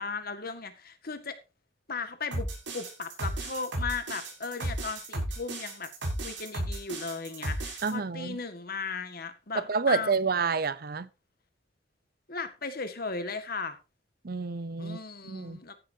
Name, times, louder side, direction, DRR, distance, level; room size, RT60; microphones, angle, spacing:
voice 1, 0.0-1.4 1.9-5.9 6.2-10.2 12.3-13.8 14.8-15.8, left 4 dB, 55° left, 1.9 m, -36 dB
sound 1, 2.3-7.9, right 1 dB, 80° right, 6.7 m, -34 dB
voice 2, 7.8-8.4 9.7-11.1 14.2-15.0 15.3-15.6, right 5 dB, 55° right, 0.7 m, -29 dB
15.0 x 11.0 x 2.8 m
head